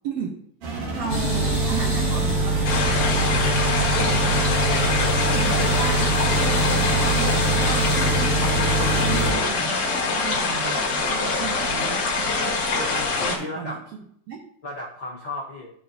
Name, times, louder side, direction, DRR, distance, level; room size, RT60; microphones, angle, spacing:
voice 1, 0.0-0.4 0.9-3.5 4.0-4.8 5.3-12.0 13.2-13.8 14.3-14.4, right 6 dB, 80° right, -1 dB, 1.5 m, -34 dB
sound 1, 0.6-9.5, right 1 dB, 60° right, 1.6 m, -30 dB
sound 2, 1.1-9.3, right 2 dB, 35° right, 1.3 m, -23 dB
sound 3, 2.6-13.4, left 3 dB, 55° left, 1.7 m, -24 dB
voice 2, 12.7-13.8 14.6-15.7, left 1 dB, 75° left, -7 dB, 1.0 m, -35 dB
11.0 x 4.3 x 2.6 m, 0.68 s
omnidirectional pair, 4.0 m